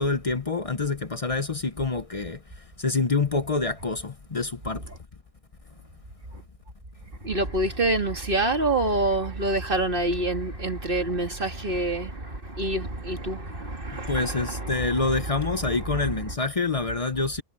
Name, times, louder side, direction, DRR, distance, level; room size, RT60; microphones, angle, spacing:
voice 1, 0.0-4.9 14.1-17.4, left 3 dB, 35° left, 0.6 m, -27 dB
voice 2, 7.2-16.3, right 2 dB, 35° right, 2.7 m, -27 dB
omnidirectional pair, 1.5 m